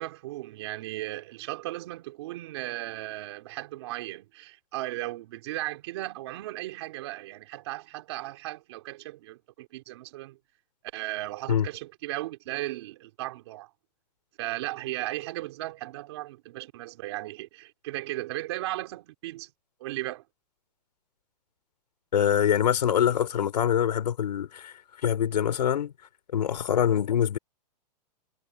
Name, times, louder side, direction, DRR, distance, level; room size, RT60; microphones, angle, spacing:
voice 1, 0.0-10.4 10.9-13.7 14.4-19.5 19.8-20.2, right 17 dB, 40° right, 3.3 m, -36 dB
voice 2, 22.1-24.7 25.0-25.9 26.3-27.4, left 9 dB, 80° left, 3.9 m, -24 dB
hypercardioid pair, 170°, 21 cm